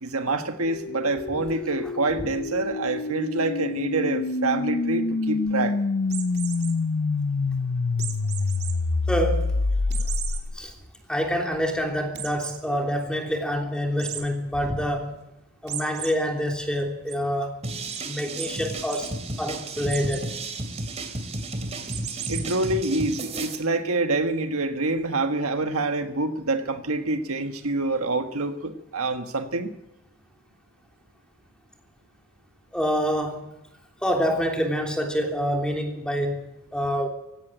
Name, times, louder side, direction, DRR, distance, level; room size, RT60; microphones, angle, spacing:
voice 1, 0.0-5.8 22.3-29.7, right 2 dB, 75° right, 7 dB, 1.5 m, -26 dB
sound 1, 0.6-10.7, left 3 dB, 55° left, 0.6 m, -27 dB
sound 2, 6.0-6.7 8.0-8.7 9.2-9.3 9.9-10.4 10.9-11.0 11.3-11.4 12.1-12.6 14.0-14.2 15.7-16.1 16.5-17.1 17.9-18.0 18.4-18.5 18.8-19.1 19.9-20.3 21.9-22.6, right 10 dB, 45° right, 3.0 m, -35 dB
voice 2, 9.1-9.5 10.5-10.7 11.1-15.1 15.6-17.6 18.0-19.1 19.4-20.3 32.7-33.5 34.0-36.4 36.7-37.1, equal, 5° left, 2 dB, 3.2 m, -26 dB
sound 3, 17.6-23.6, right 2 dB, 30° right, 2.5 m, -33 dB
17.5 x 16.0 x 9.1 m, 0.91 s
head